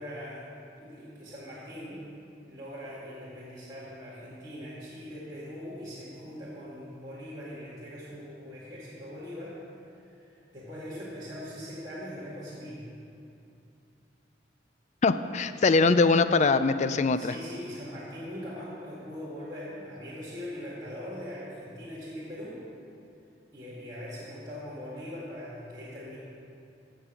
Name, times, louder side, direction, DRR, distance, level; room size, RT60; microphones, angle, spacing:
voice 1, 0.0-2.0 2.4-9.6 9.9-12.9 17.2-22.6 23.5-26.2, equal, 25° right, -10 dB, 1.9 m, -41 dB
voice 2, 15.0-17.3, left 4 dB, 40° left, 12 dB, 0.4 m, -22 dB
15.5 x 5.2 x 7.1 m, 2.6 s
head